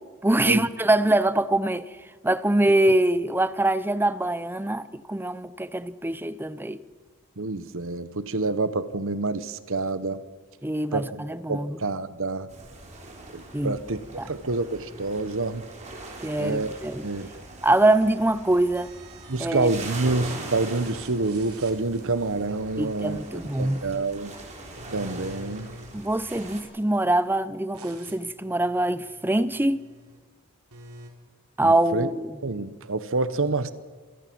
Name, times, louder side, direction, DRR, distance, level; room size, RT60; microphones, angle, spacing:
voice 1, 0.2-1.9 2.2-6.8 10.6-11.8 13.5-13.8 14.2-14.3 16.2-17.1 17.6-18.9 19.4-19.7 22.8-23.9 25.9-29.8 31.6-32.3, right 1 dB, 10° right, 0.7 m, -24 dB
voice 2, 7.4-10.2 10.9-12.5 13.3-14.0 14.3-15.6 16.4-16.7 17.0-17.4 19.3-24.3 24.9-25.7 31.6-32.1 32.4-33.7, right 3 dB, 60° right, 1.2 m, -28 dB
sound 1, 12.5-26.6, right 2 dB, 30° right, 3.8 m, -42 dB
sound 2, 18.7-20.0 20.2-24.2 24.6-27.1 27.7-30.2 30.7-31.1, right 1 dB, 80° right, 3.2 m, -48 dB
26.5 x 17.5 x 6.2 m
head